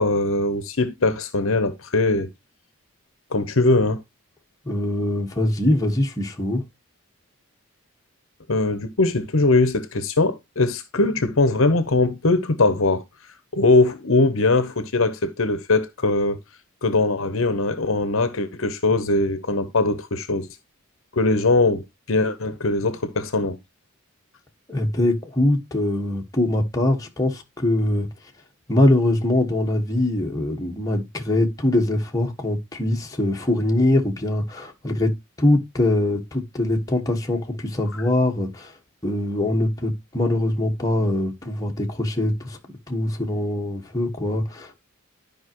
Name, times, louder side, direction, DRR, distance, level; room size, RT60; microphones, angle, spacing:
voice 1, 0.0-2.3 3.3-4.0 8.5-13.0 13.5-16.4 16.8-20.5 21.1-23.6, left 2 dB, 60° left, 0.9 m, -21 dB
voice 2, 4.6-6.6 24.7-28.1 28.7-38.8 39.0-44.8, left 1 dB, 15° left, 1.5 m, -23 dB
12.0 x 5.2 x 3.0 m
head